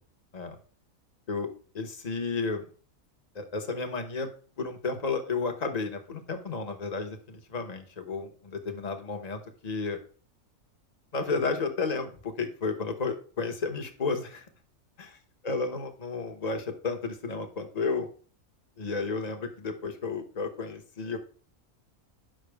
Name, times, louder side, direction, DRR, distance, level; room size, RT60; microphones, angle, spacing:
voice 1, 1.7-2.7 3.3-4.3 4.6-10.0 11.1-14.5 15.0-15.1 15.4-18.1 18.8-21.2, left 4 dB, 30° left, 5 dB, 1.1 m, -32 dB
8.9 x 6.0 x 3.5 m, 0.42 s
omnidirectional pair, 1.5 m